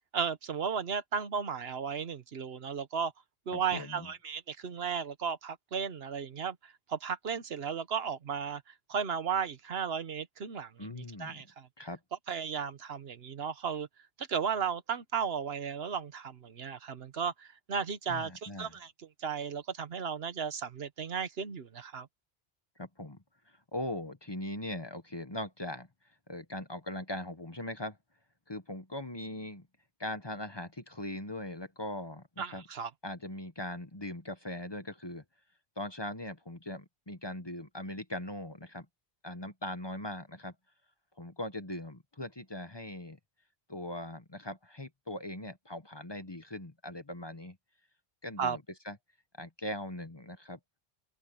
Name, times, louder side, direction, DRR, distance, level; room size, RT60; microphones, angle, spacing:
voice 1, 0.1-3.1 3.5-8.6 8.9-11.7 12.3-13.9 14.2-18.9 19.2-22.1 32.4-32.9 48.4-48.6, right 6 dB, 70° right, 1.2 m, -35 dB
voice 2, 3.5-4.1 10.8-11.4 11.8-12.0 18.1-18.8 22.8-25.9 26.3-28.0 28.5-29.7 30.0-32.6 33.0-35.2 35.8-38.8 39.2-40.5 41.2-43.2 43.7-47.6 48.2-49.0 49.4-50.6, left 1 dB, 25° left, 1.1 m, -40 dB
open air
omnidirectional pair, 1.1 m